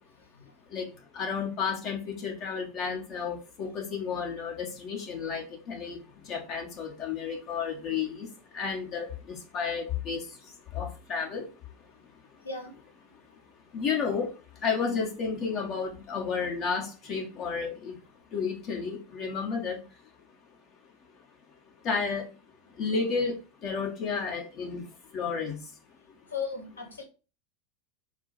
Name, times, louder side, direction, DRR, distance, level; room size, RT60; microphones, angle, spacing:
voice 1, 0.7-11.5 13.7-14.3 14.6-18.0 18.3-19.8 21.8-22.3 22.8-24.9 25.1-25.6, left 5 dB, 45° left, 1.3 m, -32 dB
voice 2, 26.3-27.0, left 5 dB, 90° left, 0.9 m, -35 dB
4.7 x 2.0 x 4.0 m
hypercardioid pair, 90°, 0 cm